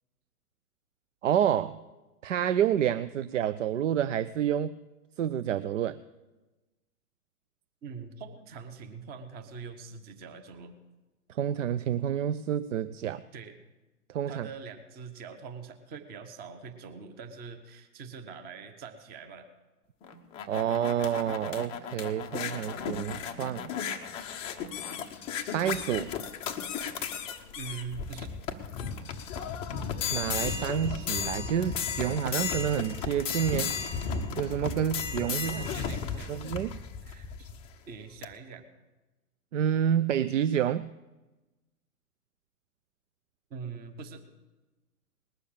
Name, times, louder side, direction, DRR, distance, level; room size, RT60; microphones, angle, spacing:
voice 1, 1.2-1.8 2.2-4.8 5.2-6.0 11.3-13.2 14.1-14.5 20.5-23.7 25.5-26.1 30.1-33.7 34.4-35.6 36.3-36.8 39.5-40.9, right 9 dB, 55° right, 15 dB, 0.5 m, -28 dB
voice 2, 7.8-10.8 13.3-13.6 14.3-19.5 27.6-28.3 35.4-36.5 37.0-37.5 37.9-38.6 43.5-44.2, right 5 dB, 20° right, 8 dB, 1.1 m, -43 dB
sound 1, 20.0-37.7 38.2-38.3, left 6 dB, 15° left, 0.5 m, -35 dB
19.5 x 6.9 x 8.7 m, 1.1 s
hypercardioid pair, 125°, 47 cm